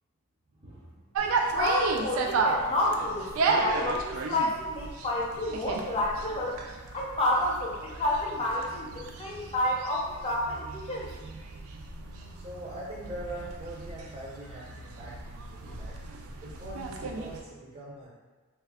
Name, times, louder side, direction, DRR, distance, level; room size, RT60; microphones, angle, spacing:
voice 1, 0.6-0.9 12.4-16.0 16.4-18.1, right 1 dB, 30° right, -6 dB, 0.5 m, -42 dB
sound 1, 1.1-17.4, right 4 dB, 80° right, 0.4 m, -33 dB
voice 2, 1.5-6.6 6.9-11.3, left 1 dB, 30° left, -3 dB, 0.6 m, -30 dB
3.2 x 2.3 x 3.4 m, 1.3 s
head